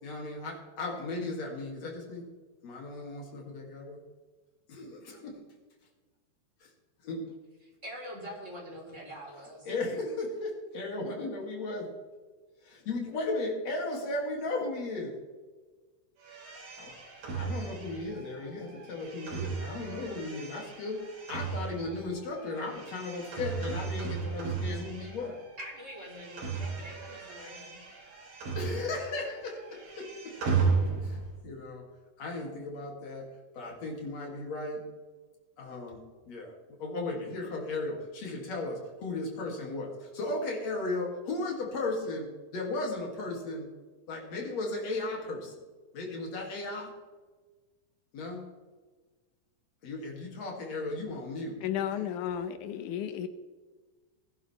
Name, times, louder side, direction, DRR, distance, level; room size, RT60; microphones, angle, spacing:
voice 1, 0.0-2.3 2.6-4.0 4.7-5.5 6.6-6.7 7.0-7.2 9.7-11.9 12.6-15.2 16.8-16.9 17.3-21.0 21.3-25.4 28.5-30.3 31.0-31.9 32.2-33.3 33.6-34.8 35.6-36.5 36.8-43.7 44.1-45.5 45.9-46.9 48.1-48.4 49.8-52.1, left 2 dB, 60° left, 0 dB, 3.7 m, -36 dB
voice 2, 7.8-9.7 25.6-27.8, equal, 20° right, -2 dB, 4.5 m, -44 dB
sound 1, 16.2-25.5 25.8-29.2 29.5-31.4, right 5 dB, 75° right, 5.2 m, -35 dB
voice 3, 51.6-53.3, left 9 dB, 80° left, 10 dB, 2.3 m, -33 dB
20.0 x 11.0 x 3.5 m, 1.3 s
omnidirectional pair, 3.6 m